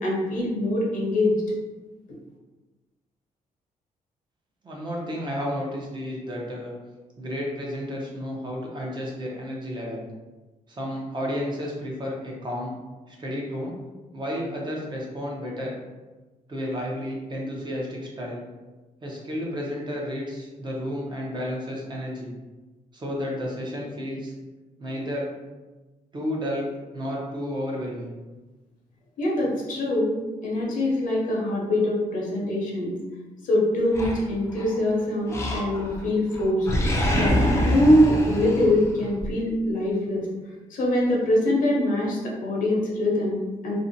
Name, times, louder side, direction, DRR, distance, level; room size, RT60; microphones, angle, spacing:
voice 1, 0.0-1.3 29.2-30.1 30.4-33.0 33.4-36.7 37.1-37.4 37.7-40.3 40.7-43.8, left 1 dB, 65° left, -3 dB, 0.7 m, -23 dB
voice 2, 4.6-6.7 7.2-10.0 10.7-12.8 13.1-13.8 14.1-15.7 16.5-18.4 19.0-22.3 22.9-24.3 24.8-25.3 26.1-28.1, equal, 30° right, -2 dB, 0.6 m, -32 dB
Animal, 33.9-34.8 35.3-36.1 36.3-39.3, equal, 20° left, 0.4 m, -25 dB
2.5 x 2.1 x 2.6 m, 1.2 s
cardioid pair, 120°, 14 cm